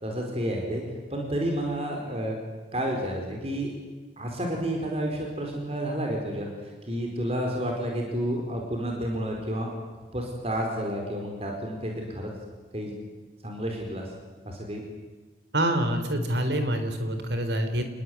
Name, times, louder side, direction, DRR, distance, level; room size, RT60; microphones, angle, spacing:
voice 1, 0.0-0.8 1.1-2.4 2.7-3.7 4.2-9.7 10.1-12.3 12.7-12.9 13.4-14.1 14.4-14.8, right 1 dB, 35° right, 1 dB, 4.7 m, -30 dB
voice 2, 15.5-17.8, right 1 dB, 80° right, 7 dB, 3.9 m, -26 dB
27.5 x 20.0 x 9.5 m, 1.3 s
head